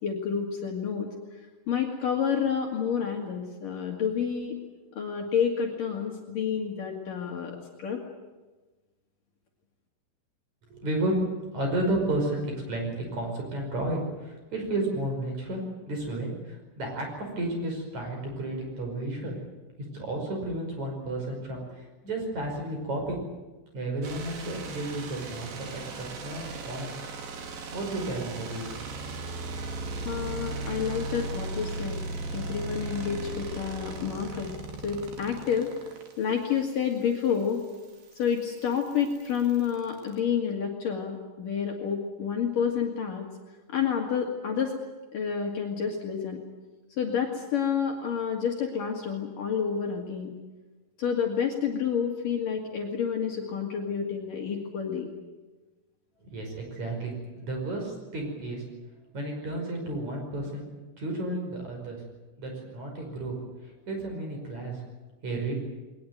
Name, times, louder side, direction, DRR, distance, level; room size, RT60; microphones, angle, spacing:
voice 1, 0.0-1.1 1.7-4.6 5.0-8.0 30.1-32.0 32.3-34.5 34.8-35.7 36.2-37.6 38.2-43.3 43.7-44.7 45.1-46.4 47.0-50.3 51.0-55.1, left 7 dB, 50° left, 1 dB, 3.5 m, -29 dB
voice 2, 10.7-11.2 11.5-19.4 19.8-23.2 23.7-26.9 27.7-28.8 56.2-58.6 59.1-62.0 62.4-63.4 63.9-64.8 65.2-65.5, right 1 dB, 40° right, 2 dB, 6.4 m, -32 dB
sound 1, 24.0-40.2, right 3 dB, 55° right, 3.9 m, -38 dB
22.0 x 20.0 x 9.3 m, 1.2 s
omnidirectional pair, 5.3 m